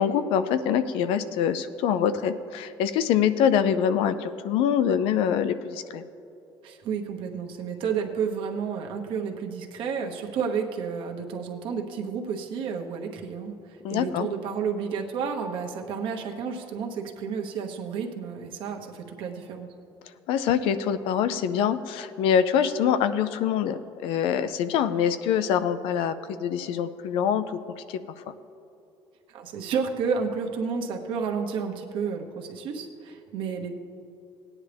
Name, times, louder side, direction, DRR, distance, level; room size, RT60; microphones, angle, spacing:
voice 1, 0.0-6.0 13.8-14.3 20.3-28.0 28.3-28.4, left 8 dB, 90° left, 12 dB, 0.5 m, -25 dB
voice 2, 6.6-19.7 29.3-33.7, right 6 dB, 70° right, 3 dB, 1.1 m, -31 dB
17.5 x 9.6 x 3.4 m, 2.7 s
cardioid pair, 145°, 9 cm